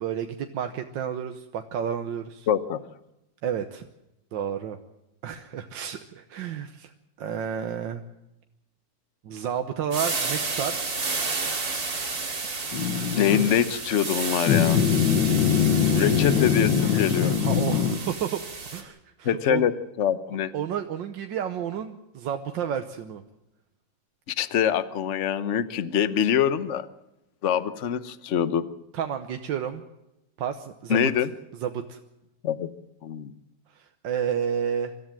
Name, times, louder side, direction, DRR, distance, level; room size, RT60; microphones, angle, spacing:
voice 1, 0.0-2.5 3.4-3.9 4.3-4.8 5.2-6.9 7.2-8.0 9.2-10.8 17.4-18.4 18.7-19.6 20.5-23.2 28.9-29.8 30.4-31.3 31.6-32.0 33.7-34.9, right 8 dB, 75° right, 6 dB, 1.7 m, -31 dB
voice 2, 2.5-2.8 13.2-14.8 16.0-17.3 19.2-19.7 20.0-20.5 24.3-26.9 27.4-28.7 30.9-31.3 32.4-32.7 33.0-33.3, left 9 dB, 50° left, 14 dB, 1.0 m, -24 dB
sound 1, 9.9-18.8, right 4 dB, 50° right, 2.9 m, -31 dB
sound 2, 12.7-13.6 14.5-18.0, left 8 dB, 75° left, 1.9 m, -22 dB
24.5 x 14.0 x 7.5 m, 0.91 s
omnidirectional pair, 2.0 m